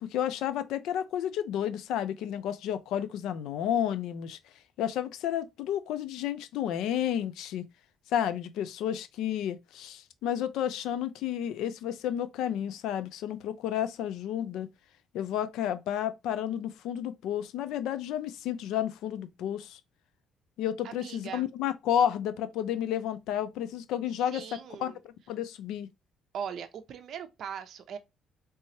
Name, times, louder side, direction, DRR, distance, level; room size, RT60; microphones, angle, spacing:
voice 1, 0.0-4.4 4.8-7.6 8.1-14.7 15.1-19.8 20.6-24.9 25.3-25.9, left 10 dB, 80° left, 0.4 m, -31 dB
voice 2, 20.8-21.5 24.3-25.0 26.3-28.0, right 8 dB, 55° right, 0.6 m, -40 dB
3.4 x 3.0 x 2.7 m
cardioid pair, 145°, 0 cm